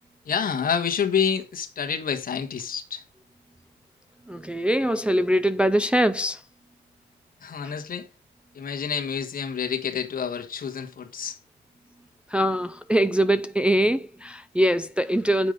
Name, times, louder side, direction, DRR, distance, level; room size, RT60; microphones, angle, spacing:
voice 1, 0.2-3.0 7.4-8.1 8.5-11.4, left 7 dB, 45° left, 1.4 m, -28 dB
voice 2, 4.3-6.4 12.3-15.5, right 1 dB, 5° right, 0.3 m, -22 dB
7.4 x 5.3 x 4.9 m
cardioid pair, 90°, 20 cm